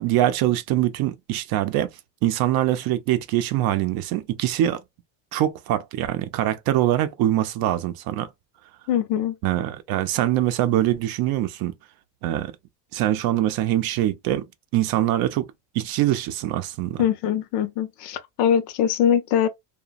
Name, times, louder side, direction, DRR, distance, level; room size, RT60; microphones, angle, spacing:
voice 1, 0.0-1.9 2.2-4.8 5.3-8.3 9.4-11.7 12.2-12.5 12.9-14.4 14.7-15.5 15.7-17.0, right 13 dB, 55° right, 0.5 m, -23 dB
voice 2, 8.9-9.3 17.0-19.5, left 9 dB, 70° left, 0.6 m, -22 dB
2.9 x 2.2 x 2.3 m
cardioid pair, 140°, 43 cm